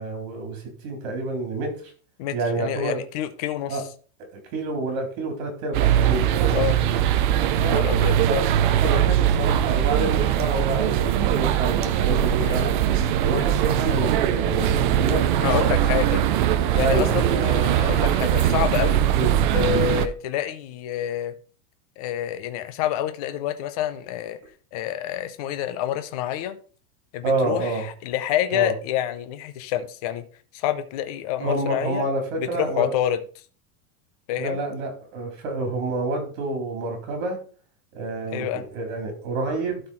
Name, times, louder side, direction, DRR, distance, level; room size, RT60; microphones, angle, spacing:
voice 1, 0.0-1.9 2.3-3.0 3.7-3.8 4.3-6.6 7.5-7.8 8.3-12.7 13.2-15.8 16.8-17.2 19.1-19.8 27.2-27.8 28.5-28.7 31.4-32.9 34.4-37.4 37.9-39.8, right 2 dB, 60° right, 3 dB, 3.9 m, -28 dB
voice 2, 2.2-3.8 6.5-6.8 7.7-8.1 12.4-12.6 15.4-16.2 16.7-19.0 19.5-21.3 22.0-24.4 24.7-26.6 27.1-30.2 30.5-32.0 32.4-33.2 34.3-34.6 38.3-38.6, left 11 dB, 30° left, 10 dB, 0.4 m, -27 dB
sound 1, 5.7-20.1, right 11 dB, 35° right, 0.4 m, -21 dB
12.0 x 4.4 x 4.3 m, 0.41 s
supercardioid pair, 180°, 44 cm